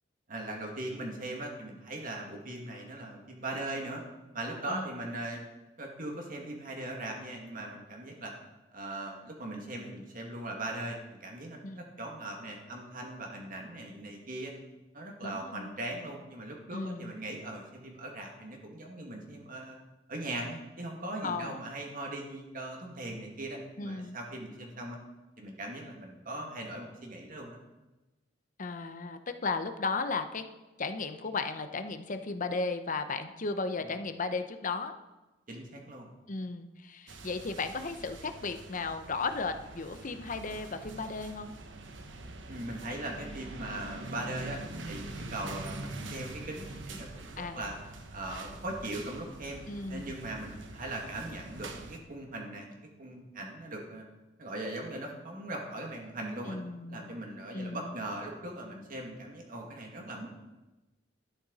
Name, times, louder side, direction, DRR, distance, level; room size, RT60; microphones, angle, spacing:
voice 1, 0.3-4.0 4.3-5.4 5.8-8.3 8.7-14.5 14.9-19.8 20.1-25.0 25.4-27.6 35.5-36.1 42.5-47.7 48.1-49.6 49.9-54.1 54.4-56.6 56.9-60.3, right 1 dB, 50° right, 0 dB, 2.2 m, -40 dB
voice 2, 15.2-15.7 16.7-17.1 21.2-21.6 23.8-24.1 28.6-30.5 30.8-35.0 36.3-41.5 47.4-47.8 49.7-50.3 56.5-57.1 57.5-58.0, left 4 dB, 45° left, 9 dB, 0.8 m, -35 dB
sound 1, 37.1-52.0, right 2 dB, 85° right, 1.2 m, -44 dB
12.0 x 10.5 x 4.1 m, 1.1 s
head